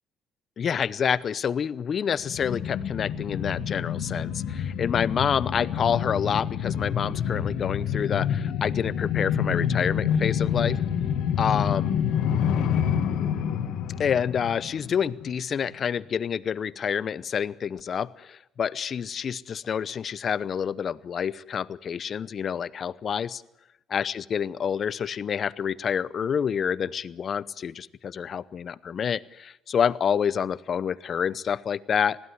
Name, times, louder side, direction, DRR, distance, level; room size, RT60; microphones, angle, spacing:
voice 1, 0.6-10.8 11.4-12.0 14.0-23.4 23.9-32.2, left 7 dB, 45° left, 18 dB, 0.8 m, -28 dB
sound 1, 2.2-15.4 15.7-15.8, left 8 dB, 75° left, 2.0 m, -27 dB
21.0 x 15.5 x 9.6 m, 0.84 s
cardioid pair, 95°, 0 cm